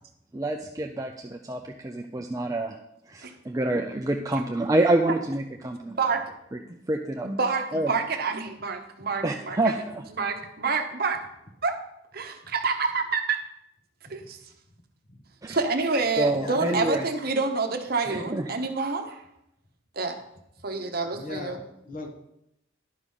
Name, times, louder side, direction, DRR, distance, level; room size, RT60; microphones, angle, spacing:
voice 1, 0.3-2.8 3.1-6.0 6.5-6.6 6.9-7.3 7.7-7.9 9.2-10.0 15.4-15.6 16.2-17.1 18.1-18.5, right 2 dB, 15° right, 3 dB, 0.4 m, -27 dB
voice 2, 7.2-9.8 10.1-11.2 11.6-11.7 12.1-13.4 14.1-14.4 15.5-19.2 20.0-20.2 20.6-21.6, right 4 dB, 50° right, 5 dB, 0.9 m, -28 dB
voice 3, 16.4-16.8 21.1-22.1, left 1 dB, 40° left, 4 dB, 1.2 m, -38 dB
11.5 x 4.9 x 5.5 m, 0.80 s
head